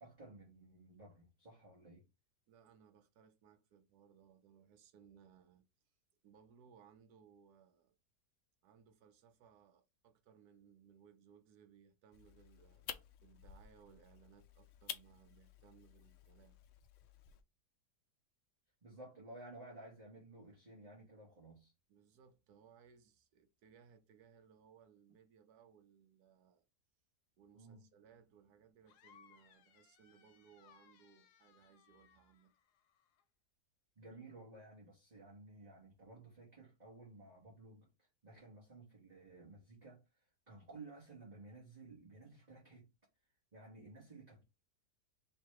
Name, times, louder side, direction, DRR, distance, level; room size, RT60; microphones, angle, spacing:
voice 1, 0.0-2.0 18.8-21.7 27.5-27.8 34.0-42.9 43.5-44.4, right 2 dB, 30° right, 1.2 m, -55 dB
voice 2, 2.5-5.7 6.2-8.0 8.6-16.6 21.9-26.6 27.4-32.5, right 7 dB, 75° right, 1.2 m, -65 dB
sound 1, 12.1-17.4, left 9 dB, 70° left, 0.7 m, -52 dB
sound 2, 28.9-33.2, left 8 dB, 85° left, 1.2 m, -67 dB
3.3 x 2.8 x 4.6 m
omnidirectional pair, 1.7 m